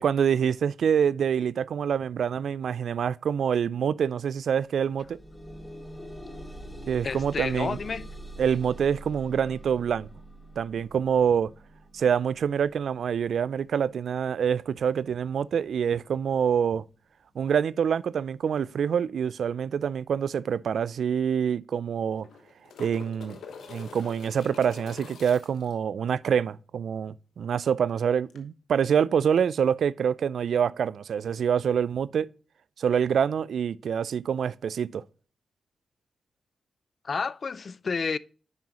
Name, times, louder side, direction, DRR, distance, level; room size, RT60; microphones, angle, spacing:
voice 1, 0.0-5.2 6.9-7.8 8.4-10.1 10.6-11.5 11.9-16.8 17.4-22.3 22.8-23.4 23.7-32.3 32.8-35.0, right 7 dB, 75° right, 0.3 m, -26 dB
sound 1, 4.2-4.3 4.5-15.6 16.3-16.4 16.9-17.0, right 1 dB, 15° left, 3.1 m, -45 dB
voice 2, 7.0-8.1 37.0-38.2, left 5 dB, 55° left, 0.4 m, -30 dB
sound 2, 20.5-20.6 20.9-21.0 22.0-25.7 28.3-28.4, left 5 dB, 80° left, 1.1 m, -46 dB
9.5 x 5.5 x 2.9 m
supercardioid pair, 45°, 0 cm